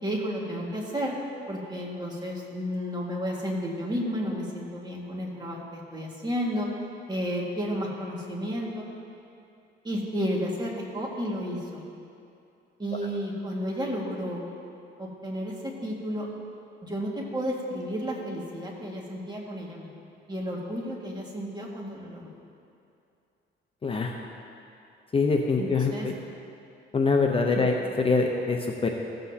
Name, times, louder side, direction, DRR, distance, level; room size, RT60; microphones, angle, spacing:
voice 1, 0.0-1.1 1.5-6.7 7.1-8.8 9.8-11.8 12.8-14.4 15.0-16.3 16.8-19.9 20.3-22.3 25.6-26.1 27.5-27.6, equal, 20° right, -3 dB, 1.8 m, -32 dB
voice 2, 23.8-24.1 25.1-26.2 26.9-28.9, left 4 dB, 30° left, 2 dB, 0.7 m, -24 dB
15.5 x 7.8 x 2.8 m, 2.6 s
cardioid pair, 90°, 20 cm